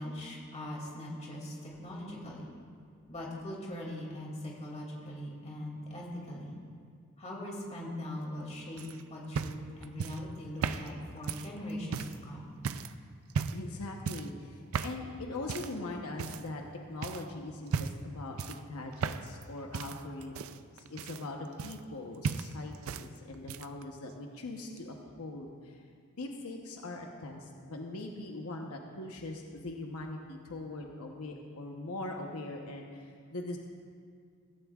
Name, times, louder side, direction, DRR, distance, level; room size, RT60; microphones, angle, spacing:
voice 1, 0.0-2.5 3.1-6.5 7.2-12.5, left 1 dB, 30° left, -3 dB, 2.5 m, -41 dB
sound 1, 8.8-12.2 12.6-12.9 13.3-13.7 14.0-14.4 14.7-15.0 15.5-15.8 16.2-16.7 17.0-17.2 17.7-18.1 18.4-19.4 19.7-22.0 22.2-23.1 23.3-23.8 24.8-24.9, right 6 dB, 70° right, 0.4 m, -36 dB
voice 2, 13.5-16.6 16.9-25.8 26.2-33.6, left 2 dB, 85° left, 1 dB, 1.0 m, -41 dB
15.5 x 15.5 x 2.4 m, 2.2 s
head